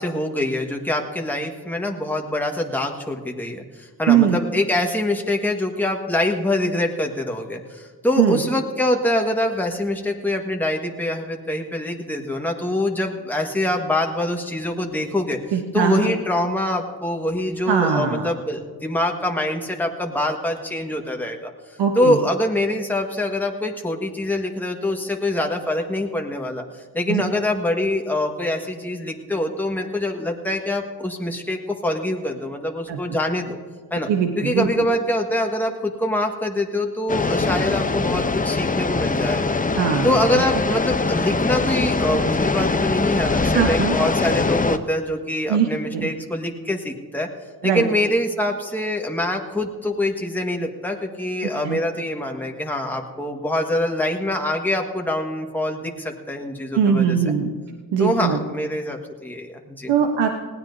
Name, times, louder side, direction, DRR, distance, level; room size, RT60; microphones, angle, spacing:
voice 1, 0.0-15.4 15.7-21.5 21.9-33.6 33.9-34.1 34.4-39.6 40.0-47.3 47.6-57.2 58.0-59.9, left 1 dB, 5° left, 1 dB, 1.5 m, -24 dB
voice 2, 4.1-4.4 8.2-8.4 15.5-16.1 17.7-18.3 21.8-22.2 27.1-27.2 32.9-33.0 34.1-34.9 39.8-40.1 43.5-44.0 45.5-46.1 47.6-47.8 51.4-51.8 56.7-57.5 57.9-58.4 59.9-60.3, right 8 dB, 80° right, 4 dB, 1.1 m, -21 dB
sound 1, 37.1-44.8, left 3 dB, 20° left, 0.7 m, -22 dB
20.0 x 16.5 x 2.7 m, 1.5 s
cardioid pair, 65°, 41 cm